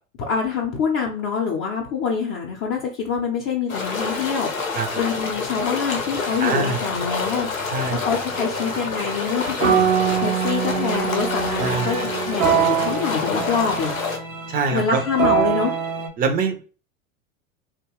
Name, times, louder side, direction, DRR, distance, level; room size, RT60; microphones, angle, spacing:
voice 1, 0.3-7.5 7.9-13.9 14.7-15.7, left 6 dB, 40° left, 0 dB, 0.7 m, -25 dB
sound 1, 3.7-14.2, left 4 dB, 90° left, 0.7 m, -28 dB
voice 2, 6.4-6.8 7.7-8.0 11.6-11.9 14.5-15.0 16.2-16.6, right 5 dB, 25° right, 7 dB, 0.5 m, -23 dB
sound 2, 8.4-16.1, right 8 dB, 85° right, 0.7 m, -24 dB
2.9 x 2.2 x 2.9 m, 0.36 s
figure-of-eight pair, 85°, 40 cm